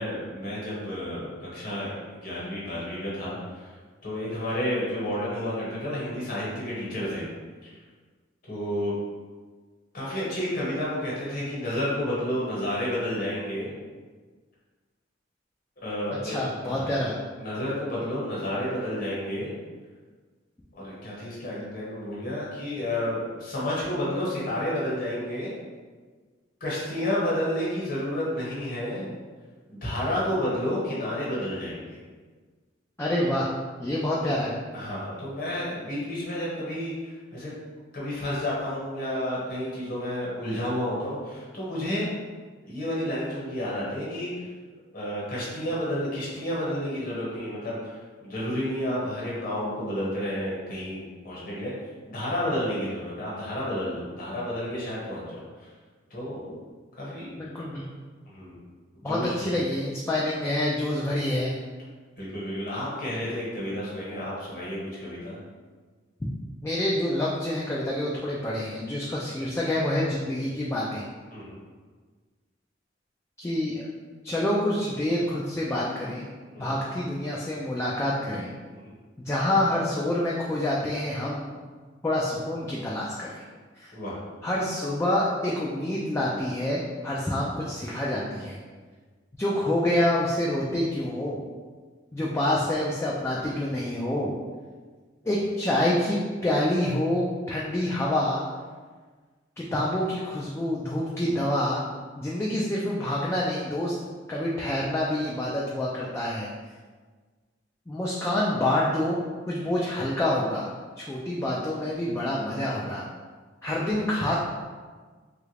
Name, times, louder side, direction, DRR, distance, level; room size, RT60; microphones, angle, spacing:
voice 1, 0.0-3.7 4.0-7.2 7.6-7.7 8.5-8.9 9.9-13.7 15.8-16.4 16.7-16.9 17.4-19.6 20.7-25.5 26.6-29.1 29.7-32.0 34.7-37.5 37.9-42.1 42.7-44.5 44.9-51.7 52.1-55.2 55.6-55.7 56.1-56.6 57.0-57.4 58.3-58.6 59.0-59.6 62.2-65.4 71.3-71.6 76.5-76.8 78.7-78.9 83.9-84.2 113.8-114.0, left 1 dB, 50° left, -7 dB, 1.2 m, -31 dB
voice 2, 16.2-17.2 33.0-33.5 33.8-34.5 57.4-57.8 59.0-61.6 66.6-71.0 73.4-73.9 74.2-76.2 76.6-78.5 79.2-81.6 82.0-83.4 83.8-83.9 84.4-88.6 89.4-91.4 92.1-94.3 95.3-98.4 99.6-101.8 102.2-103.9 104.3-106.5 107.9-109.2 109.5-110.7 111.0-113.0 113.6-114.4, left 1 dB, 15° left, -5 dB, 0.3 m, -27 dB
3.1 x 2.4 x 3.2 m, 1.4 s
head